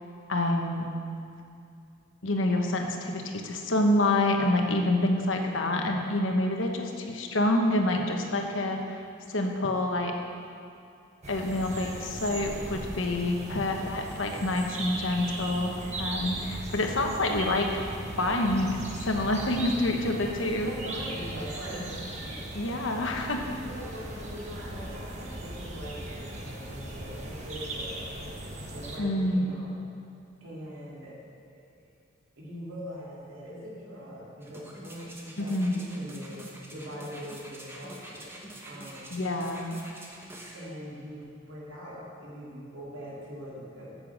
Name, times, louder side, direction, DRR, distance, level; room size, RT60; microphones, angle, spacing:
voice 1, 0.3-0.9 2.2-9.0 9.3-10.1 11.3-17.8 18.2-18.8 19.0-20.7 22.5-23.4 29.0-29.5 35.4-35.8 39.1-39.7, left 1 dB, 75° left, 3 dB, 1.2 m, -27 dB
voice 2, 5.5-6.0 13.4-13.6 20.3-22.6 23.1-28.3 28.7-29.7 30.4-31.1 31.5-31.9 32.4-36.4 36.7-38.4 38.6-39.2 40.5-44.0, equal, 90° right, -6 dB, 2.3 m, -42 dB
sound 1, 11.2-29.0, right 1 dB, 35° right, 1.2 m, -38 dB
sound 2, 34.4-40.7 41.2-41.3, right 1 dB, 10° right, 1.0 m, -46 dB
8.9 x 6.9 x 7.4 m, 2.5 s
head